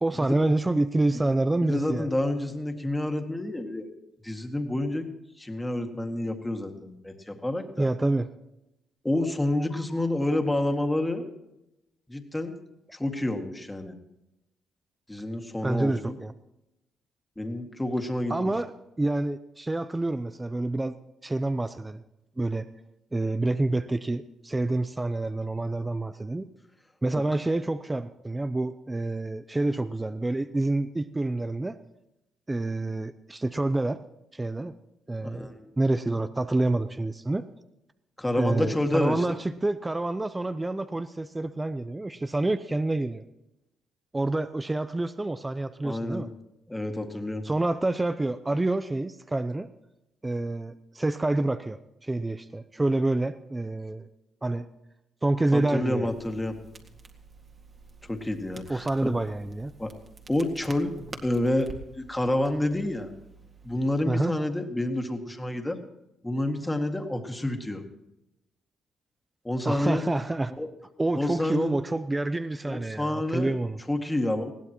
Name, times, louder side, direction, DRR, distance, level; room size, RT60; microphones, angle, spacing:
voice 1, 0.0-2.1 7.8-8.3 15.6-16.3 18.3-18.7 19.0-20.9 21.2-22.0 22.4-22.7 23.1-26.5 27.0-31.8 32.5-34.0 34.3-34.7 35.1-37.4 38.4-43.2 44.1-46.3 47.4-49.7 50.2-54.1 54.4-54.7 55.2-56.1 58.7-59.7 64.1-64.3 69.6-70.5 71.0-73.8, right 2 dB, 15° right, 11 dB, 0.6 m, -27 dB
voice 2, 1.7-3.9 4.2-5.1 5.4-7.9 9.0-11.2 12.1-12.5 12.9-13.9 15.1-16.2 17.4-18.3 35.2-35.7 38.2-39.3 45.8-46.3 46.7-47.4 55.5-56.6 58.0-59.1 59.8-59.9 60.3-60.9 61.2-63.1 63.6-65.8 66.2-67.8 69.4-70.0 70.6-70.7 71.1-71.7 72.6-73.6 73.9-74.5, left 1 dB, 10° left, 4 dB, 2.0 m, -28 dB
Crackle, 56.0-64.0, right 3 dB, 35° right, 2.0 m, -48 dB
20.5 x 16.0 x 3.0 m, 0.91 s
cardioid pair, 90°, 0 cm